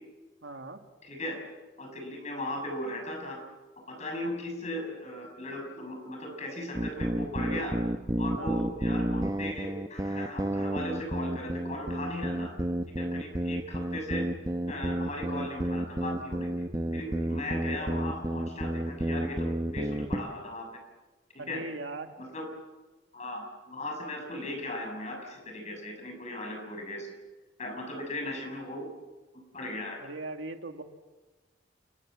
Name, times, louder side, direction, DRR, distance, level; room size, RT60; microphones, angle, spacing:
voice 1, 0.4-0.8 8.4-8.6 21.4-22.1 30.0-30.8, right 3 dB, 85° right, 5 dB, 2.2 m, -39 dB
voice 2, 1.0-1.4 1.8-3.4 3.9-7.8 8.2-12.5 13.0-14.3 14.7-16.6 16.9-20.7 21.3-21.6 22.2-22.5 23.1-27.1 27.6-28.9 29.3-30.1, left 1 dB, 40° left, 3 dB, 7.2 m, -37 dB
sound 1, 6.7-20.3, right 1 dB, 20° right, 1.0 m, -31 dB
29.0 x 20.0 x 7.6 m, 1.2 s
head